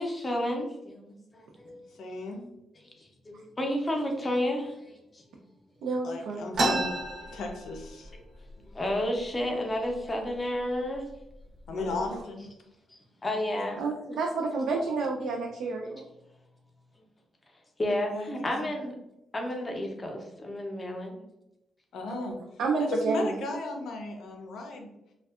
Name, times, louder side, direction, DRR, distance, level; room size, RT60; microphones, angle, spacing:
voice 1, 0.0-1.8 2.7-5.2 8.1-8.2 8.6-11.0 11.8-12.0 12.9-13.8 17.8-18.9 19.3-21.2, left 1 dB, 25° left, 2 dB, 0.5 m, -32 dB
voice 2, 2.0-2.4 6.0-6.9 7.3-8.1 11.7-12.5 18.1-18.5 21.9-22.4 22.9-24.9, left 2 dB, 80° left, 3 dB, 0.5 m, -35 dB
voice 3, 5.8-6.4 12.1-12.2 13.8-16.0 22.1-22.3 22.6-23.4, right 3 dB, 85° right, 0 dB, 0.3 m, -30 dB
sound 1, 6.5-8.2 8.5-8.6 8.9-9.5 10.1-10.2 10.9-11.1 11.6-12.0, right 2 dB, 60° right, 0.7 m, -30 dB
2.6 x 2.2 x 2.3 m, 0.89 s
cardioid pair, 125°, 0 cm